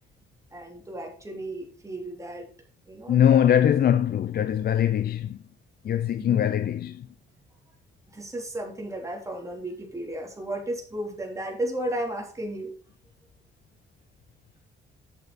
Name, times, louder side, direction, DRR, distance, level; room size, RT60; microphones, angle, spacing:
voice 1, 0.5-2.5 2.9-3.5 6.2-6.4 8.1-12.7, right 1 dB, 15° right, 3.3 m, -34 dB
voice 2, 3.1-5.4 5.8-7.1, left 10 dB, 50° left, 0.6 m, -22 dB
8.2 x 7.2 x 4.2 m
cardioid pair, 90°, 20 cm